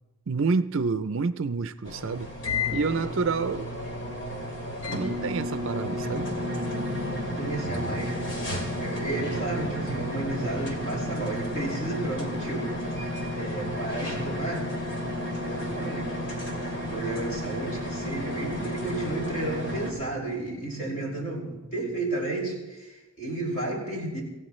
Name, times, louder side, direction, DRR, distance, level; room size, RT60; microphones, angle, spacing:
voice 1, 0.3-2.3 2.7-3.7 4.9-6.3, right 4 dB, 65° right, 0.5 m, -28 dB
sound 1, 1.8-19.9, left 1 dB, 55° left, 2.8 m, -32 dB
Drum, 6.0-22.1, right 2 dB, 35° right, 0.8 m, -41 dB
voice 2, 7.4-8.3 8.8-12.9 13.3-14.7 15.5-16.1 16.9-24.2, right 2 dB, 35° left, 5.5 m, -32 dB
26.5 x 15.5 x 3.2 m
head